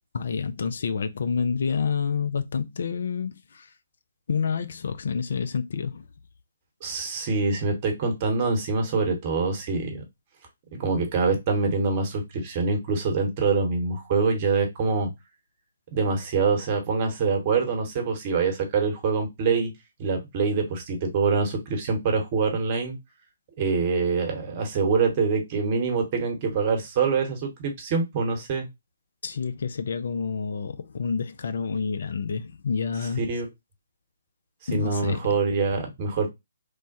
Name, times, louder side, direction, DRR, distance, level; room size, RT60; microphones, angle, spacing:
voice 1, 0.1-3.7 4.3-6.0 29.2-33.2 34.7-35.2, left 6 dB, 60° left, 0.3 m, -28 dB
voice 2, 6.8-10.0 10.7-15.1 15.9-19.7 20.0-23.0 23.6-28.7 33.2-33.4 34.7-36.3, right 4 dB, 35° right, 1.0 m, -25 dB
3.2 x 2.1 x 2.6 m
figure-of-eight pair, 135°, 0 cm